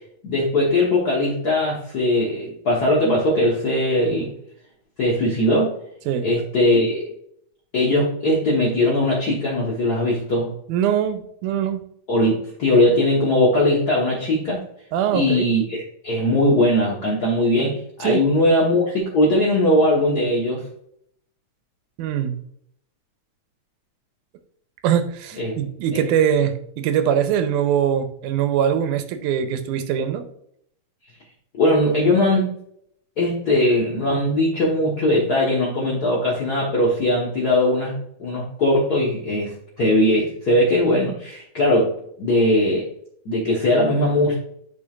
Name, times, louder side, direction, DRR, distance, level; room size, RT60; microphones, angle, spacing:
voice 1, 0.2-4.3 5.0-5.7 6.2-7.0 7.7-10.5 12.1-14.6 15.1-20.6 25.4-25.5 25.9-26.0 31.6-32.6 33.2-39.5 39.8-42.9 43.2-44.3, left 1 dB, 55° left, -4 dB, 1.1 m, -20 dB
voice 2, 10.7-11.8 14.9-15.5 18.0-18.2 22.0-22.4 24.8-30.2, right 9 dB, 90° right, 9 dB, 2.2 m, -22 dB
9.6 x 4.9 x 2.4 m, 0.69 s
omnidirectional pair, 3.5 m